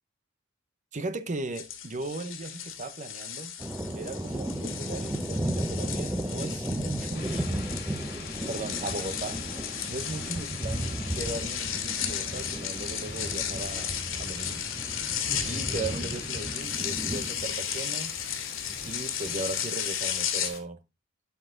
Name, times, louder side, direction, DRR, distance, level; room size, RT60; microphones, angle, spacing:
voice 1, 0.9-3.5 3.9-7.7 8.1-9.4 9.9-14.7 15.4-18.1 18.8-20.8, right 2 dB, 40° right, 0.8 m, -37 dB
sound 1, 1.5-20.5, left 9 dB, 75° left, 2.2 m, -35 dB
sound 2, 3.6-19.7, right 1 dB, 10° right, 0.6 m, -35 dB
sound 3, 7.1-20.6, left 6 dB, 55° left, 3.9 m, -43 dB
12.0 x 5.9 x 3.7 m
head